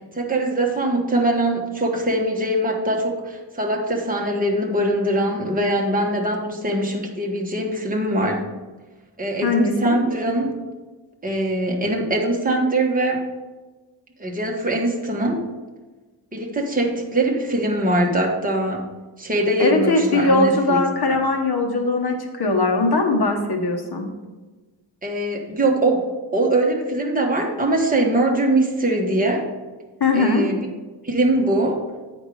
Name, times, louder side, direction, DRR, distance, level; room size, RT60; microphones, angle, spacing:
voice 1, 0.1-8.4 9.2-10.5 11.2-13.2 14.2-15.4 16.3-18.8 19.2-20.8 21.1-21.2 25.0-26.0 26.3-29.5 30.1-30.6 31.0-31.8, right 1 dB, 20° right, -1 dB, 1.3 m, -22 dB
voice 2, 9.4-10.0 19.6-24.1 30.0-30.5, left 2 dB, 55° left, 3 dB, 1.2 m, -20 dB
8.5 x 5.1 x 4.8 m, 1.3 s
wide cardioid pair, 110°, 46 cm